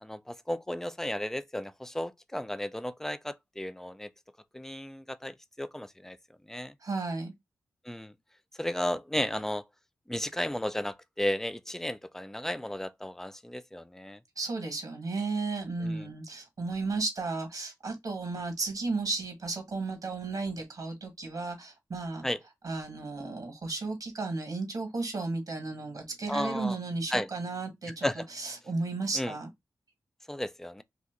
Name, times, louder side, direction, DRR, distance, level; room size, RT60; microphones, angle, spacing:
voice 1, 0.0-4.1 4.5-6.2 6.5-6.7 7.9-8.1 8.6-9.6 10.1-14.2 15.8-16.1 22.2-22.4 26.3-26.8 27.1-27.3 28.0-28.3 29.1-29.3 30.3-30.8, left 1 dB, 5° left, 0.4 m, -34 dB
voice 2, 6.8-7.3 14.4-22.2 22.6-29.5, right 3 dB, 65° right, 1.6 m, -34 dB
2.8 x 2.5 x 3.7 m
cardioid pair, 55°, 7 cm